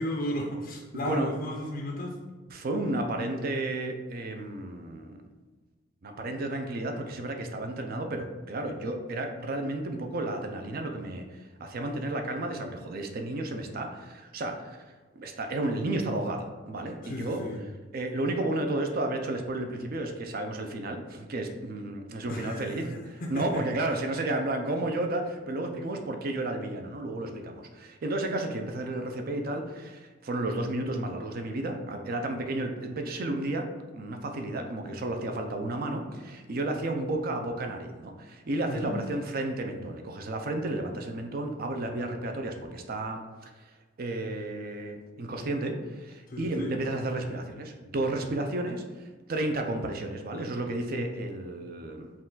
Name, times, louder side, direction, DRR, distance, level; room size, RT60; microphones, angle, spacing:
voice 1, 0.0-2.2 17.0-17.6 22.3-22.6 23.2-23.6 38.7-38.9 46.3-46.7, equal, 45° left, 0 dB, 0.4 m, -34 dB
voice 2, 0.9-1.3 2.5-5.2 6.0-14.8 15.2-17.4 17.9-43.7 44.0-52.1, right 2 dB, 50° right, 4 dB, 0.5 m, -32 dB
4.4 x 2.4 x 3.8 m, 1.3 s
head